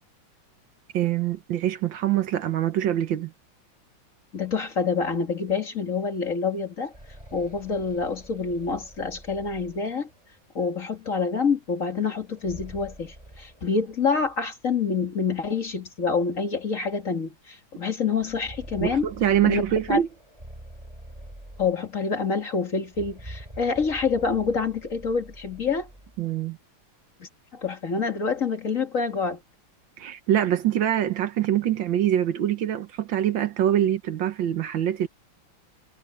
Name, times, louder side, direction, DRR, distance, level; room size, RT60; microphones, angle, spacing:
voice 1, 0.9-3.3 18.8-20.1 26.2-26.6 30.0-35.1, right 11 dB, 70° right, 1.7 m, -24 dB
voice 2, 4.3-6.9 7.3-10.1 10.5-19.1 19.4-19.6 19.9-20.0 21.6-25.9 27.2-29.4 33.8-33.9, left 5 dB, 40° left, 2.3 m, -27 dB
sound 1, 6.7-10.4 12.2-14.4 14.7-14.8 15.6-15.7 16.2-16.4 18.0-22.2 22.8-26.2, right 1 dB, 15° right, 4.8 m, -45 dB
omnidirectional pair, 2.2 m